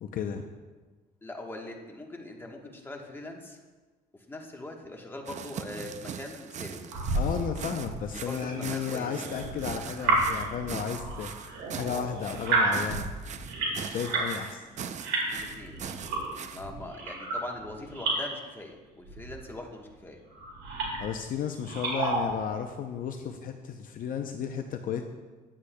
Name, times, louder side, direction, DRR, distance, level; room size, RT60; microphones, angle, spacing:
voice 1, 0.0-0.4 7.1-13.1 13.9-14.7 21.0-25.0, left 7 dB, 55° left, 5 dB, 0.6 m, -34 dB
voice 2, 1.2-3.6 4.1-6.8 8.1-9.3 15.3-15.8 16.5-20.2, left 2 dB, 15° left, 1 dB, 1.2 m, -42 dB
sound 1, 5.3-16.6, right 7 dB, 45° right, 0.5 m, -40 dB
sound 2, 6.9-14.4 14.7-18.3 19.0-19.6 20.3-21.1 21.5-22.4, right 2 dB, 85° right, 2.3 m, -32 dB
9.8 x 8.1 x 2.2 m, 1.3 s
cardioid pair, 110°, 17 cm